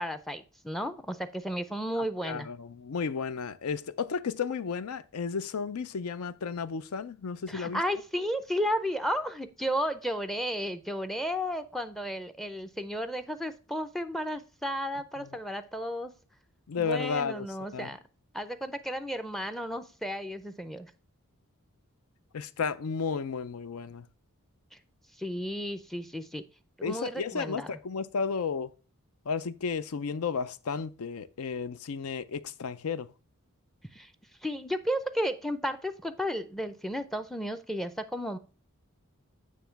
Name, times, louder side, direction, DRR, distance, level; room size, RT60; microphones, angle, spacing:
voice 1, 0.0-2.5 7.5-16.1 16.8-18.0 18.3-20.9 25.2-26.4 26.8-27.8 33.9-34.1 34.4-38.4, equal, ahead, 0.5 m, -33 dB
voice 2, 2.0-7.8 15.2-15.3 16.7-17.5 17.7-17.9 22.3-24.1 26.8-28.7 29.3-33.1, left 5 dB, 80° left, 0.5 m, -33 dB
9.2 x 3.1 x 5.7 m
head